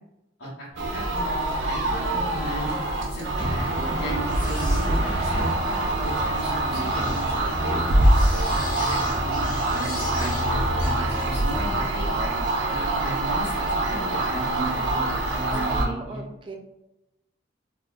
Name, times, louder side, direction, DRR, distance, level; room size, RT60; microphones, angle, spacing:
voice 1, 0.4-2.8 3.1-7.8 8.5-12.1 12.7-16.2, equal, 90° left, -11 dB, 1.0 m, -36 dB
sound 1, 0.7-1.3 3.4-6.0, equal, 20° left, 0.9 m, -33 dB
sound 2, 0.8-15.9, right 1 dB, 85° right, 0.5 m, -25 dB
sound 3, 4.2-11.8, left 2 dB, 45° left, 0.5 m, -34 dB
voice 2, 15.5-16.6, right 2 dB, 25° right, 3 dB, 0.3 m, -37 dB
3.6 x 2.2 x 2.3 m, 0.92 s
head